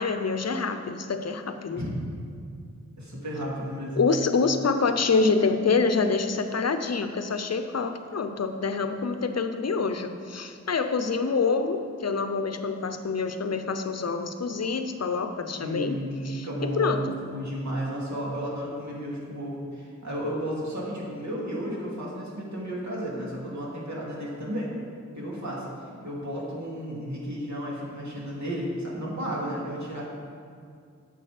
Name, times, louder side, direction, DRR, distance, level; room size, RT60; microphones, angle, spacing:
voice 1, 0.0-1.8 4.0-16.0 16.2-17.1, left 4 dB, 60° left, 8 dB, 0.7 m, -26 dB
voice 2, 3.0-4.0 15.6-16.9 17.3-24.7 25.1-25.7 26.0-30.0, equal, 65° right, -5 dB, 2.5 m, -33 dB
8.7 x 6.8 x 5.0 m, 2.3 s
wide cardioid pair, 60°, 30 cm